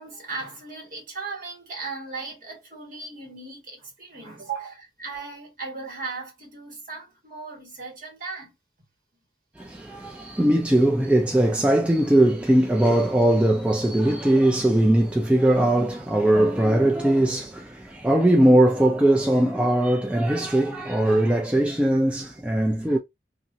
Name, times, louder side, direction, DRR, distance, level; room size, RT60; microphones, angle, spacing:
voice 1, 0.0-8.5 22.6-22.8, right 4 dB, 50° right, 1.7 m, -37 dB
voice 2, 9.6-23.0, right 1 dB, 5° right, 0.3 m, -20 dB
2.9 x 2.7 x 2.6 m
head